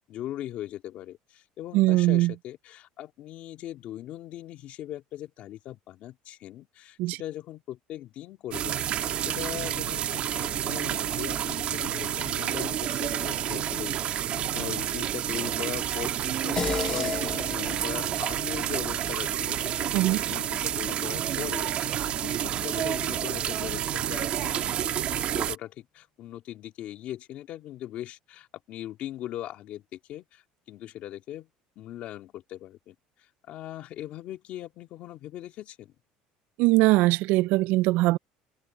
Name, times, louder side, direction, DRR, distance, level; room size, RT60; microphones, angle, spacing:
voice 1, 0.1-25.0 25.3-31.5 31.8-35.9, left 13 dB, 50° left, 2.1 m, -40 dB
voice 2, 1.7-2.3 7.0-7.2 19.9-20.2 36.6-38.2, right 19 dB, 65° right, 0.3 m, -21 dB
sound 1, 8.5-25.6, right 10 dB, 45° right, 1.3 m, -29 dB
sound 2, 16.6-21.3, left 6 dB, 25° left, 2.1 m, -37 dB
cardioid pair, 150°, 3 cm